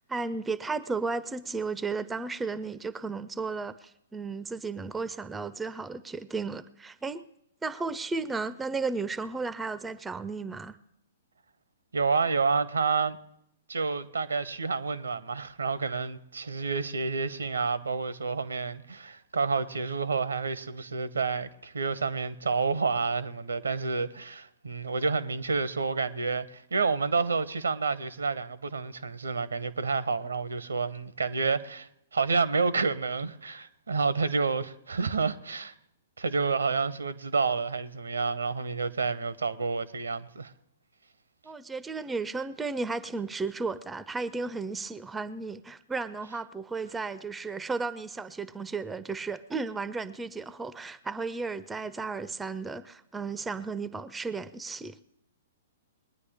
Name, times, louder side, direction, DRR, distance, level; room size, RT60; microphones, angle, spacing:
voice 1, 0.1-7.2 7.6-10.8 41.4-55.0, right 4 dB, 10° right, 0.5 m, -34 dB
voice 2, 11.9-13.2 13.7-35.7 36.2-40.5, right 4 dB, 75° right, 0.8 m, -29 dB
21.5 x 9.7 x 3.5 m
figure-of-eight pair, 115°, 0 cm